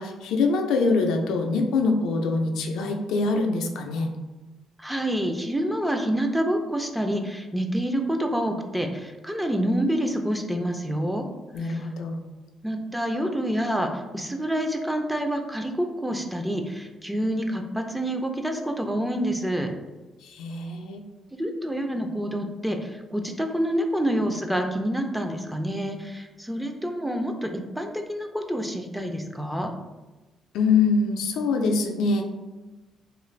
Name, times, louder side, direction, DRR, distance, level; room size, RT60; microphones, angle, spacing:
voice 1, 0.0-4.1 11.5-12.2 20.2-21.0 30.5-32.3, left 4 dB, 85° left, 3 dB, 0.3 m, -24 dB
voice 2, 4.8-11.2 11.6-11.9 12.6-19.7 21.3-27.5 27.8-29.7, equal, 5° right, 4 dB, 0.3 m, -27 dB
2.4 x 2.4 x 3.1 m, 1.2 s
cardioid pair, 90°, 0 cm